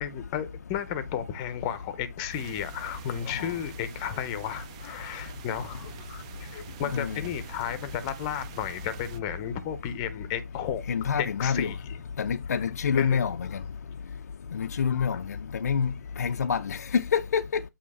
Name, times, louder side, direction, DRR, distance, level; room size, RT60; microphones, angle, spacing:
voice 1, 0.0-10.8 11.2-12.0 13.0-13.3 14.6-15.2, left 9 dB, 20° left, 0.7 m, -33 dB
sound 1, 2.3-9.2, right 8 dB, 20° right, 0.4 m, -45 dB
voice 2, 6.8-7.3 10.9-11.7 12.2-13.6 14.5-15.4 15.6-17.6, left 6 dB, 55° left, 0.4 m, -27 dB
8.2 x 2.8 x 4.1 m
figure-of-eight pair, 150°, 10 cm